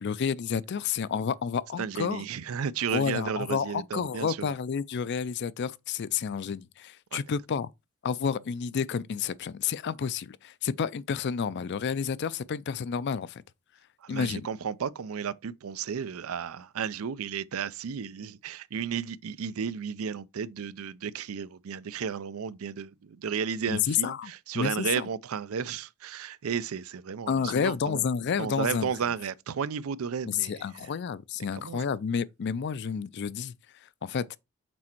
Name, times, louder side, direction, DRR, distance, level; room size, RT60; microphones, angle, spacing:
voice 1, 0.0-2.2 2.9-7.7 8.0-13.4 14.1-14.5 23.7-25.1 27.3-28.9 30.3-33.5 34.0-34.3, left 6 dB, 50° left, 0.4 m, -30 dB
voice 2, 1.8-4.5 7.1-7.2 14.0-28.1 28.4-30.9 31.5-31.8, right 7 dB, 75° right, 0.5 m, -33 dB
6.1 x 4.3 x 4.4 m
head